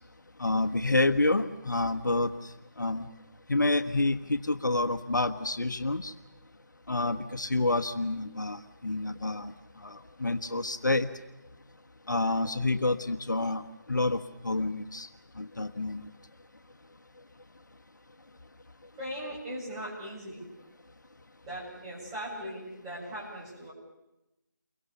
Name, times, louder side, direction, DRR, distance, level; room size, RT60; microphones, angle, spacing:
voice 1, 0.4-2.3 2.8-3.1 3.5-6.1 6.9-9.5 9.8-9.9 10.2-11.1 12.1-13.6 13.9-14.2 14.4-15.1 15.4-16.1, left 2 dB, 70° left, 7 dB, 1.4 m, -28 dB
voice 2, 19.0-20.5 21.5-23.7, equal, 15° right, -6 dB, 7.2 m, -39 dB
29.5 x 23.5 x 7.0 m, 0.93 s
figure-of-eight pair, 160°, 11 cm